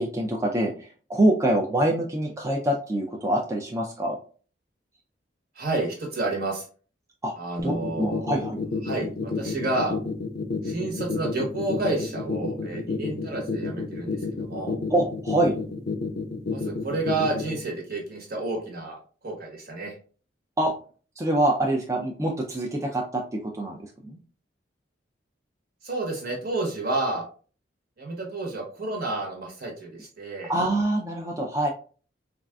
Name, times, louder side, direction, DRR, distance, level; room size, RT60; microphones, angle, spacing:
voice 1, 0.0-4.2 7.2-7.3 7.6-8.6 14.9-15.6 20.6-20.7 21.2-24.2 30.5-31.7, right 1 dB, 15° right, 0 dB, 0.3 m, -25 dB
voice 2, 5.5-6.7 7.4-8.2 8.8-10.0 10.6-14.8 16.5-20.0 25.8-27.2 28.0-30.5, right 2 dB, 60° right, 0 dB, 1.1 m, -30 dB
sound 1, 7.6-17.6, left 4 dB, 55° left, 0.4 m, -29 dB
3.5 x 2.4 x 2.3 m, 0.39 s
head